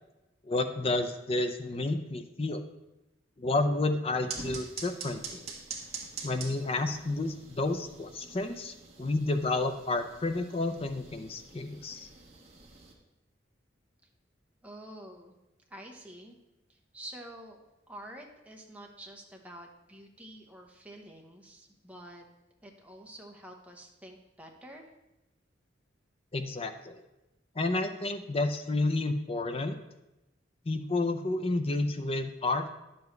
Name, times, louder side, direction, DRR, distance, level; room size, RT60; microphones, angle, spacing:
voice 1, 0.4-2.6 3.4-5.5 6.2-12.1 26.3-27.0 27.5-29.8 30.7-32.7, left 2 dB, 30° left, 8 dB, 0.5 m, -30 dB
sound 1, 4.3-12.9, right 4 dB, 35° right, 1.4 m, -45 dB
voice 2, 14.6-15.3 15.7-16.4 16.7-17.6 17.9-22.2 22.6-24.9, right 1 dB, 10° right, 1 dB, 1.0 m, -48 dB
10.5 x 6.9 x 3.2 m, 0.95 s
head